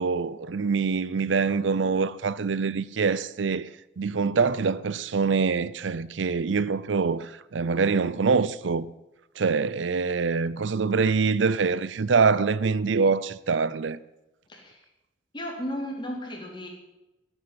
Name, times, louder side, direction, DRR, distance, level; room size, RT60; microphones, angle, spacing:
voice 1, 0.0-3.7 4.0-8.9 9.4-14.0, right 5 dB, 80° right, 0.5 m, -24 dB
voice 2, 14.5-14.8 15.3-16.7, equal, 25° left, 3.7 m, -34 dB
14.0 x 9.1 x 8.4 m
head